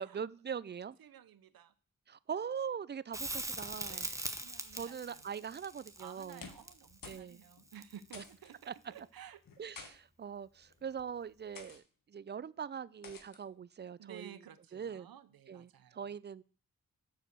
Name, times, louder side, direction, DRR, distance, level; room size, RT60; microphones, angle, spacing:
voice 1, 0.0-1.0 2.1-4.1 4.7-6.4 7.0-7.4 8.1-8.2 8.7-8.8 9.6-11.8 12.1-14.3 14.7-15.1 15.5-16.4, right 7 dB, 30° right, 19 dB, 0.4 m, -42 dB
voice 2, 1.0-1.7 3.8-5.3 6.0-9.4 14.0-16.0, right 9 dB, 80° right, 13 dB, 0.7 m, -54 dB
Crackle, 3.1-8.3 11.0-11.1, right 1 dB, 10° right, 1.0 m, -42 dB
sound 1, 6.2-6.8 7.0-7.3 7.6-7.7 8.1-8.5 9.4-9.9 10.7-10.9 11.5-11.8 13.0-13.4, left 5 dB, 70° left, 1.3 m, -50 dB
6.1 x 4.8 x 6.6 m, 0.43 s
cardioid pair, 50°, 35 cm